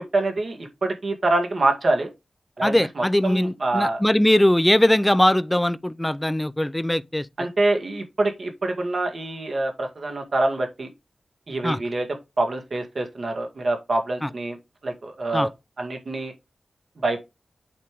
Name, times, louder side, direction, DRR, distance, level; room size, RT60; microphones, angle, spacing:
voice 1, 0.1-2.1 2.6-4.0 7.4-10.9 11.5-12.1 12.4-14.6 14.8-15.5 15.8-16.3 17.0-17.2, right 2 dB, 65° right, 1.9 m, -25 dB
voice 2, 2.6-7.3 11.6-11.8 14.2-14.3 15.3-15.5, left 1 dB, 10° left, 0.6 m, -20 dB
8.5 x 3.4 x 4.8 m
cardioid pair, 55°, 0 cm